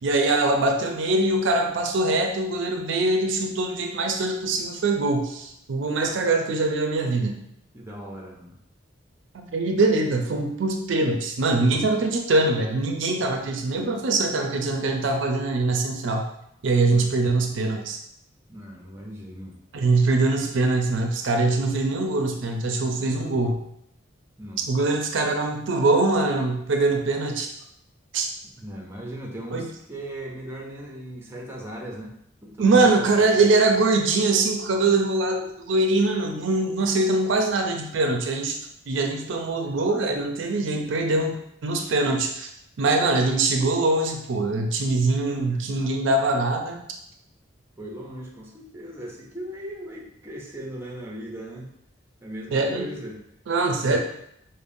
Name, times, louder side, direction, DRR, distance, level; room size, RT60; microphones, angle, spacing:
voice 1, 0.0-7.4 9.3-16.2 16.6-18.0 19.7-23.6 24.7-27.5 28.1-28.3 29.5-29.7 32.6-38.6 38.9-41.4 41.6-42.5 42.8-46.8 52.5-52.9 53.5-54.0, right 2 dB, 65° right, 3 dB, 0.4 m, -23 dB
voice 2, 7.7-8.5 11.7-11.9 16.8-17.1 18.5-19.6 24.4-24.6 28.6-32.1 32.4-33.5 47.8-51.7 52.2-53.2, right 1 dB, 10° right, -2 dB, 0.5 m, -38 dB
5.1 x 2.1 x 2.6 m, 0.74 s
head